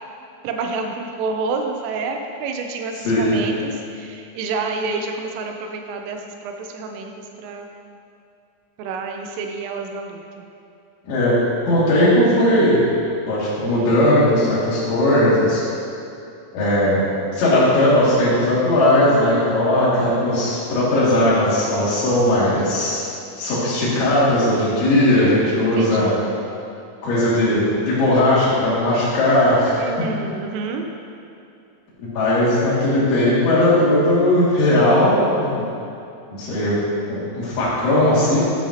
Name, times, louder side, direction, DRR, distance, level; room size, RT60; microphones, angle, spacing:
voice 1, 0.4-7.1 7.4-7.7 8.8-10.2 25.6-26.2 29.8-30.8, right 4 dB, 90° right, 4 dB, 3.4 m, -28 dB
voice 2, 3.0-3.5 11.1-11.4 11.7-12.8 13.3-15.6 16.5-17.0 17.3-23.1 23.4-26.1 27.0-29.9 32.1-35.7 36.4-36.8 37.1-38.4, left 1 dB, 70° left, -9 dB, 4.8 m, -18 dB
12.5 x 9.1 x 2.9 m, 2.6 s
omnidirectional pair, 5.6 m